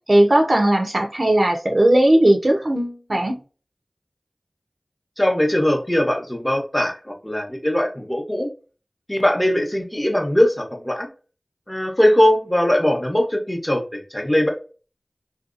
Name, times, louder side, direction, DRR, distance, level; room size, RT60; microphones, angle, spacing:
voice 1, 0.1-3.4, right 1 dB, 50° right, 0.5 m, -17 dB
voice 2, 5.2-8.5 9.1-11.1 11.7-14.5, left 1 dB, 15° left, 0.7 m, -20 dB
2.7 x 2.2 x 2.4 m
wide cardioid pair, 50°, 0 cm